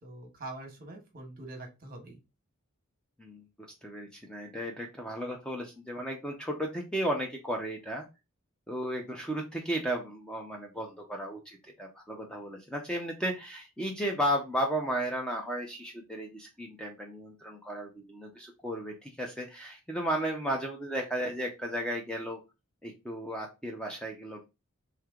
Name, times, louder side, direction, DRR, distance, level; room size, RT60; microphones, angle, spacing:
voice 1, 0.0-2.2, right 2 dB, 40° right, 4 dB, 1.2 m, -44 dB
voice 2, 3.2-8.1 8.7-22.4 22.8-24.5, equal, 5° left, 1 dB, 0.6 m, -34 dB
3.3 x 3.2 x 3.6 m, 0.26 s
head